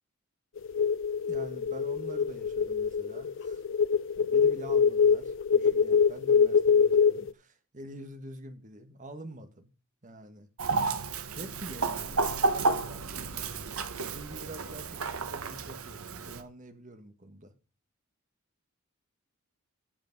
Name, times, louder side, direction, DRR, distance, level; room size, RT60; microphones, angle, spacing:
sound 1, 0.6-7.3, left 6 dB, 60° left, 0.5 m, -24 dB
voice 1, 1.3-3.6 4.1-9.7 10.0-10.5 11.3-17.5, right 1 dB, 35° right, 1.6 m, -46 dB
Chicken rooster, 10.6-16.4, right 3 dB, 90° right, 1.2 m, -31 dB
9.2 x 7.2 x 5.3 m
head